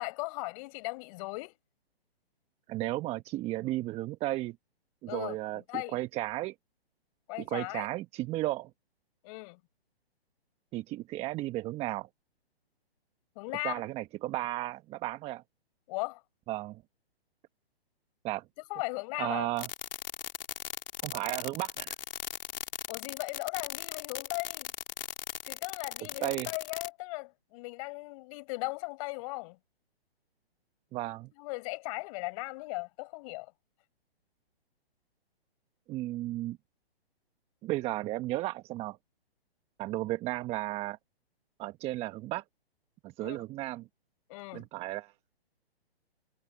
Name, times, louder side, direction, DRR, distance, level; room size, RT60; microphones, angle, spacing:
voice 1, 0.0-1.5 5.1-6.0 7.3-7.9 9.2-9.6 13.4-13.8 15.9-16.2 18.7-19.5 22.9-24.7 25.4-29.6 31.4-33.5 43.2-43.4 44.3-44.7, left 26 dB, 35° left, 5.7 m, -37 dB
voice 2, 2.7-4.6 5.0-5.6 5.9-6.5 7.5-8.7 10.7-12.1 13.6-15.4 16.5-16.8 18.2-18.4 19.2-19.7 21.0-21.9 26.2-26.5 30.9-31.3 35.9-36.6 37.6-39.0 39.8-41.0 41.6-42.4 43.0-43.9 44.5-45.1, right 17 dB, 20° right, 1.3 m, -34 dB
sound 1, 19.6-26.9, left 9 dB, 60° left, 3.7 m, -37 dB
hypercardioid pair, 140°, 31 cm